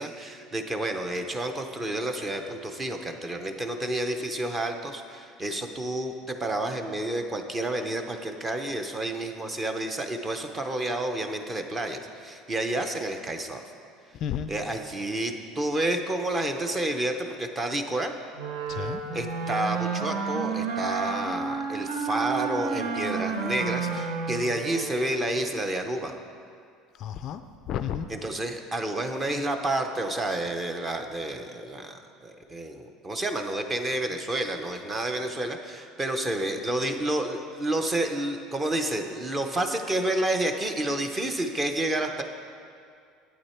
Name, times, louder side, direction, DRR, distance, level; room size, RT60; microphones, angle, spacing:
voice 1, 0.0-13.6 14.5-18.1 19.1-26.1 28.1-42.2, right 1 dB, 15° right, 6 dB, 0.6 m, -30 dB
Wind instrument woodwind instrument, 18.4-25.0, right 5 dB, 75° right, 1.2 m, -31 dB
voice 2, 18.7-19.0 27.0-27.4 27.7-28.1, left 9 dB, 40° left, 10 dB, 0.3 m, -31 dB
11.0 x 9.0 x 4.3 m, 2.3 s
cardioid pair, 170°, 0 cm